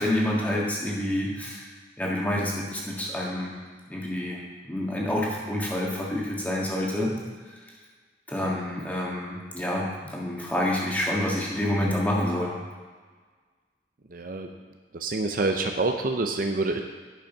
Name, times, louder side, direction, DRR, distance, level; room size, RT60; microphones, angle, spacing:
voice 1, 0.0-1.6 2.0-3.5 3.9-4.4 4.7-7.1 8.3-12.5, left 1 dB, 10° left, -4 dB, 1.8 m, -28 dB
voice 2, 14.1-14.5 14.9-16.8, right 3 dB, 55° right, 4 dB, 0.6 m, -27 dB
11.0 x 5.4 x 5.4 m, 1.5 s
head